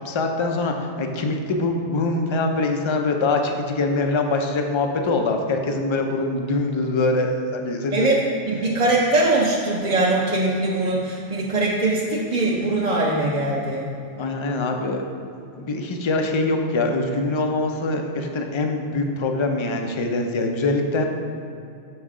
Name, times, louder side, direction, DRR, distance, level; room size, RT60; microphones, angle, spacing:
voice 1, 0.0-8.1 14.2-15.1 15.5-21.0, left 2 dB, 45° left, 4 dB, 0.4 m, -23 dB
voice 2, 8.5-13.9, right 2 dB, 40° right, -5 dB, 0.7 m, -21 dB
6.4 x 5.6 x 4.9 m, 2.7 s
omnidirectional pair, 1.3 m